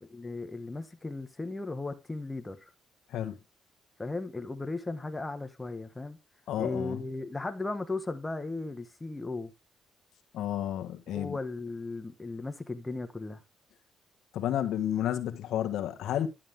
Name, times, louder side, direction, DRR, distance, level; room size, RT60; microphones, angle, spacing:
voice 1, 0.0-2.7 4.0-6.2 6.6-9.5 11.1-13.4, left 3 dB, 15° left, 1.4 m, -36 dB
voice 2, 6.5-7.0 10.3-11.4 14.3-16.3, left 11 dB, 80° left, 1.3 m, -31 dB
11.0 x 7.5 x 3.6 m
cardioid pair, 90°, 0 cm